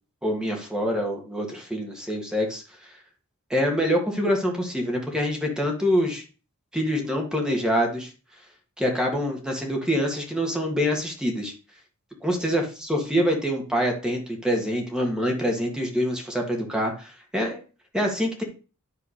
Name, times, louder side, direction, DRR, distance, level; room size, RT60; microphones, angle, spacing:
voice 1, 0.2-2.6 3.5-6.2 6.7-8.1 8.8-11.5 12.2-17.6 17.9-18.4, equal, 5° right, 1 dB, 1.8 m, -25 dB
10.0 x 3.7 x 6.4 m, 0.35 s
head